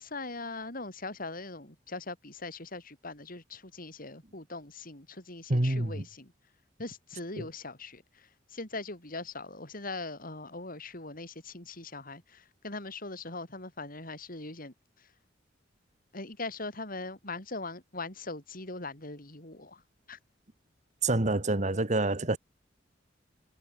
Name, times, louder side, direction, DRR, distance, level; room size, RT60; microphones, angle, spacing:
voice 1, 0.0-6.3 6.8-8.0 8.5-14.7 16.1-19.8 20.1-20.2, left 3 dB, 50° left, 6.1 m, -41 dB
voice 2, 5.5-6.0 7.4-7.5 21.0-22.4, right 2 dB, 40° right, 1.8 m, -27 dB
head